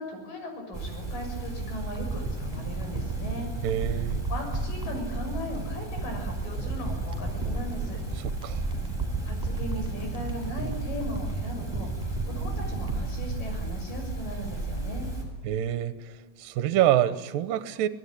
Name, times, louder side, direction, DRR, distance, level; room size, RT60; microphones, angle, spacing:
voice 1, 0.0-3.5 4.3-8.0 9.2-15.1, left 1 dB, 70° left, 8.4 m, -38 dB
sound 1, 0.7-15.2, right 3 dB, 5° left, 6.3 m, -34 dB
sound 2, 1.9-14.4 14.7-14.8, right 3 dB, 10° right, 5.2 m, -35 dB
voice 2, 3.6-4.2 8.2-8.6 15.4-16.1 16.4-17.9, right 12 dB, 80° right, 2.6 m, -26 dB
25.0 x 19.0 x 10.0 m
omnidirectional pair, 4.1 m